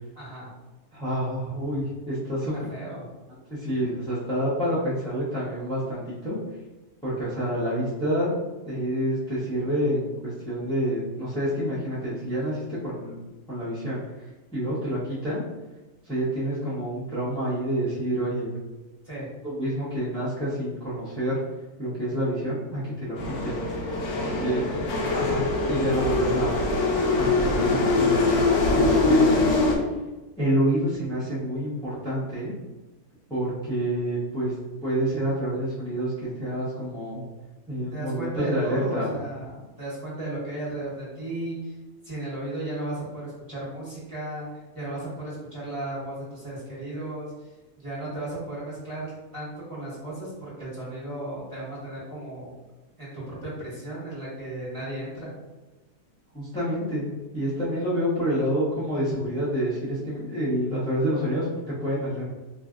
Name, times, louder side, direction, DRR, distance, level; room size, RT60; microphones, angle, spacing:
voice 1, 0.1-0.5 2.5-3.0 19.0-19.3 24.0-25.5 37.9-41.8 42.0-44.5 44.7-47.3 47.8-52.5 53.0-55.3, right 1 dB, 20° right, -9 dB, 1.2 m, -35 dB
voice 2, 0.9-2.5 3.5-6.4 7.0-8.4 8.6-13.2 13.5-14.0 14.5-15.4 16.0-18.5 19.4-21.4 21.8-23.6 24.2-24.7 25.1-26.7 27.2-28.4 28.7-29.4 30.4-32.5 33.3-34.5 34.8-37.2 37.7-39.1 56.3-62.2, equal, 5° left, -11 dB, 0.5 m, -28 dB
sound 1, 23.2-29.8, left 3 dB, 80° left, 1.1 m, -23 dB
3.2 x 2.5 x 2.4 m, 1.1 s
omnidirectional pair, 1.6 m